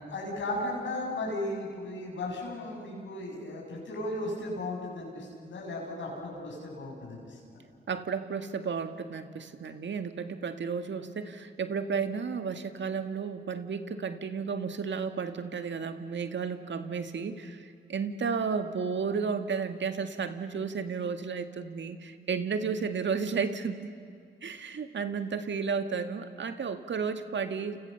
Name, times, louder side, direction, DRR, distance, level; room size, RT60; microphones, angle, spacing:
voice 1, 0.1-7.6, left 1 dB, 90° left, -2 dB, 7.8 m, -36 dB
voice 2, 7.9-23.9 24.4-27.8, right 5 dB, 75° right, 8 dB, 1.9 m, -33 dB
29.5 x 29.0 x 6.9 m, 2.3 s
cardioid pair, 55°, 19 cm